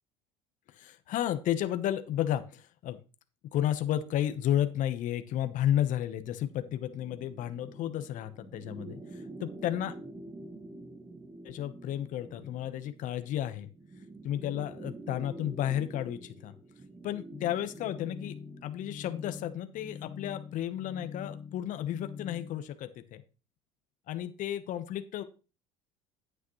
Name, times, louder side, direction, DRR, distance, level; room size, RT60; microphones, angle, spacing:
voice 1, 0.7-3.0 3.5-9.9 11.4-13.7 14.2-16.5 17.0-18.3 18.6-23.2 24.1-25.2, left 11 dB, 55° left, 10 dB, 1.0 m, -32 dB
sound 1, 6.4-18.8, right 2 dB, 20° right, 0.9 m, -47 dB
sound 2, 17.3-22.6, left 6 dB, 30° left, 1.1 m, -45 dB
9.3 x 8.8 x 3.1 m, 0.33 s
hypercardioid pair, 80°, 16 cm